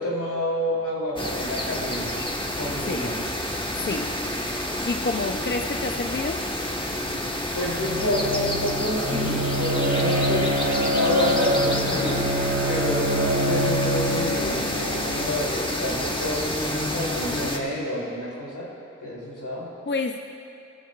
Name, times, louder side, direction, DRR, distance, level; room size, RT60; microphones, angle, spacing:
voice 1, 0.0-2.3 2.6-3.2 7.1-12.2 12.7-18.7 19.0-19.7, left 1 dB, 80° left, -4 dB, 3.1 m, -29 dB
sound 1, 1.2-17.6, left 1 dB, 15° left, 1.4 m, -29 dB
voice 2, 3.7-4.1 4.8-6.4 19.9-20.2, left 3 dB, 35° left, 5 dB, 0.6 m, -28 dB
Bowed string instrument, 7.7-15.6, equal, 90° right, 1.9 m, -26 dB
17.5 x 14.5 x 2.4 m, 2.8 s
wide cardioid pair, 40°, 30 cm